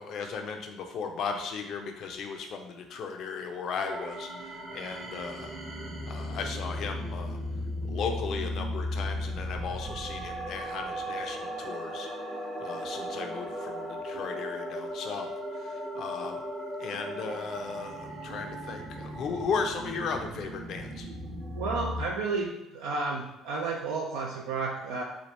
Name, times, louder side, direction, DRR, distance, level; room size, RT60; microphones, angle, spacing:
voice 1, 0.0-5.6 6.0-7.4 7.8-12.1 12.6-15.3 15.6-16.4 16.8-21.1, left 5 dB, 60° left, 4 dB, 0.5 m, -36 dB
sound 1, 3.8-22.1, equal, 50° right, 0.9 m, -36 dB
voice 2, 21.6-25.0, right 3 dB, 80° right, -2 dB, 0.4 m, -32 dB
3.1 x 2.4 x 4.1 m, 0.89 s
hypercardioid pair, 55°, 0 cm